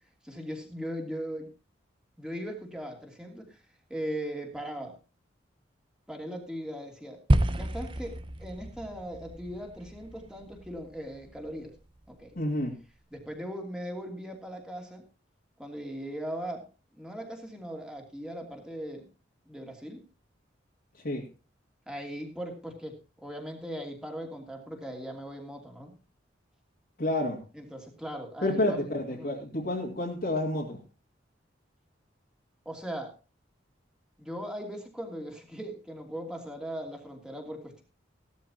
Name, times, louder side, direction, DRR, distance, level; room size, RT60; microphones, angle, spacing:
voice 1, 0.2-1.5 2.2-3.6 3.9-4.9 6.1-7.2 7.5-8.1 8.4-11.7 12.1-12.4 13.1-15.0 15.6-16.7 16.9-19.1 19.5-20.0 21.9-22.9 23.2-25.9 27.5-29.3 32.6-33.1 34.2-37.8, equal, 5° right, 2 dB, 2.8 m, -39 dB
sound 1, 7.3-11.7, right 1 dB, 25° right, 0.8 m, -30 dB
voice 2, 12.4-12.7 21.0-21.3 27.0-27.4 28.4-30.8, left 1 dB, 50° left, -2 dB, 2.3 m, -29 dB
16.5 x 12.5 x 2.9 m, 0.30 s
head